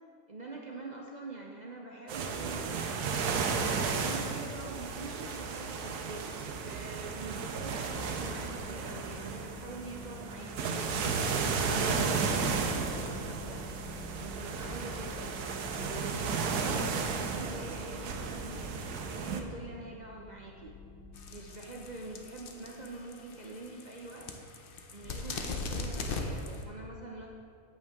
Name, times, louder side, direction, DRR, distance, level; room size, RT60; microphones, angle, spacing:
voice 1, 0.3-2.9 3.3-10.9 11.3-13.6 14.1-15.3 15.8-20.8 21.3-24.3 24.9-27.3, right 3 dB, 60° right, -1 dB, 0.4 m, -45 dB
sound 1, 2.1-19.4, right 5 dB, 90° right, 1.2 m, -34 dB
sound 2, 7.2-23.5, left 2 dB, 75° left, 2.1 m, -49 dB
sound 3, 21.2-26.6, left 3 dB, 55° left, 0.7 m, -40 dB
8.4 x 8.1 x 3.5 m, 2.4 s
omnidirectional pair, 1.6 m